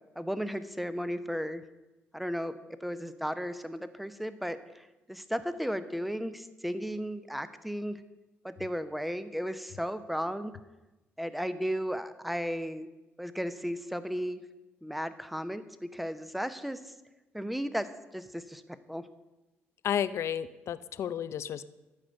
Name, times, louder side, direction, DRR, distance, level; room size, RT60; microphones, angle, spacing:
voice 1, 0.2-1.6 2.1-8.0 8.4-10.5 11.2-12.9 13.2-14.4 14.8-16.8 17.3-17.9 18.1-18.6 18.9-19.0, equal, ahead, 12 dB, 0.8 m, -35 dB
voice 2, 19.8-21.7, left 9 dB, 65° left, 15 dB, 0.5 m, -32 dB
11.5 x 5.0 x 8.0 m, 1.1 s
supercardioid pair, 70°, 5 cm